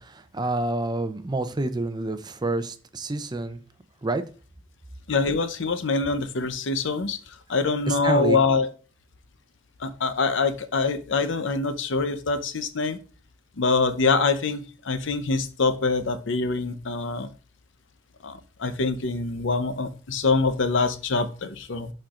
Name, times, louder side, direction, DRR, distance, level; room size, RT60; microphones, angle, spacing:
voice 1, 0.0-3.6 4.0-4.2 7.9-8.4, right 2 dB, 20° right, 9 dB, 0.5 m, -28 dB
voice 2, 5.1-7.2 7.5-8.7 9.8-13.0 13.6-17.3 18.2-21.9, left 4 dB, 65° left, 11 dB, 0.7 m, -25 dB
11.0 x 4.4 x 2.5 m, 0.37 s
head